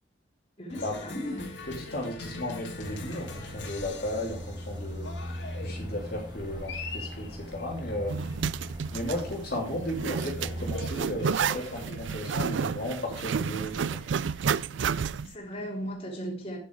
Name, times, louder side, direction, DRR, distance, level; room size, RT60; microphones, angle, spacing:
voice 1, 0.6-1.6 15.2-16.6, equal, 30° left, 3.5 m, -36 dB
Cheering, 0.7-15.9, left 3 dB, 75° left, 2.2 m, -44 dB
voice 2, 1.8-5.1 5.6-8.1 8.9-14.0, left 1 dB, 55° left, 3.1 m, -34 dB
sound 1, 2.8-11.0, equal, 25° right, 2.3 m, -39 dB
Zipper (clothing), 8.1-15.3, right 6 dB, 75° right, 0.4 m, -31 dB
9.9 x 8.2 x 4.7 m
head